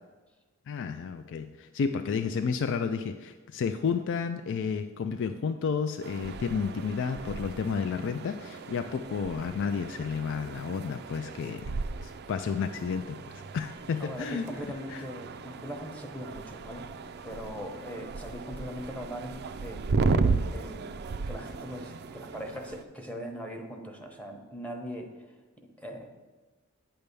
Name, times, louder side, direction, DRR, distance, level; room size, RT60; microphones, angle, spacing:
voice 1, 0.7-11.7 12.0-14.5 14.9-15.0, left 5 dB, 60° left, 8 dB, 0.3 m, -31 dB
sound 1, 6.0-22.8, right 4 dB, 50° right, 0.4 m, -35 dB
voice 2, 14.0-16.8 17.2-20.0 20.5-25.1 25.6-26.1, equal, 5° left, 3 dB, 0.9 m, -40 dB
8.9 x 3.4 x 6.7 m, 1.3 s
head